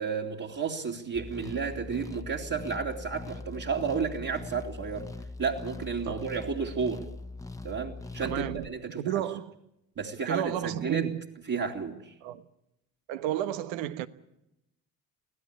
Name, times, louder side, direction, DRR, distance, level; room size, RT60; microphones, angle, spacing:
voice 1, 0.0-5.1 5.4-7.0 7.6-9.2 10.0-11.1 11.5-12.1, right 5 dB, 40° right, 2.9 m, -32 dB
sound 1, 1.1-8.7, left 2 dB, 5° left, 1.3 m, -41 dB
voice 2, 8.2-8.7 9.0-9.5 10.3-11.3 12.2-12.4 13.1-14.1, right 11 dB, 70° right, 1.3 m, -32 dB
24.5 x 16.5 x 8.4 m
hypercardioid pair, 55°, 48 cm